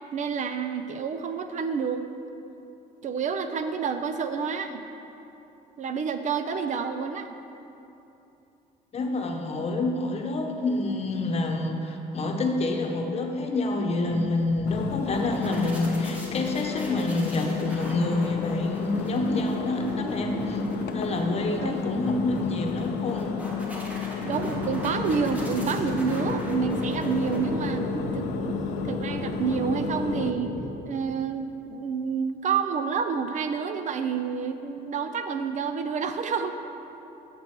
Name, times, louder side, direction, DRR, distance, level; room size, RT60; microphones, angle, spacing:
voice 1, 0.1-2.1 3.0-4.8 5.8-7.3 21.6-21.8 24.2-27.8 28.1-28.6 28.8-30.5 30.8-36.5, right 6 dB, 45° right, 8 dB, 0.5 m, -29 dB
voice 2, 8.9-20.6 20.9-23.3, left 2 dB, 40° left, 2 dB, 1.0 m, -27 dB
sound 1, 14.1-28.4, equal, 10° right, 1.5 m, -38 dB
Engine, 14.7-30.3, left 9 dB, 80° left, 0.4 m, -33 dB
sound 2, 24.2-30.7, equal, 70° right, 1.3 m, -33 dB
8.2 x 6.8 x 4.5 m, 2.9 s
cardioid pair, 110°, 17 cm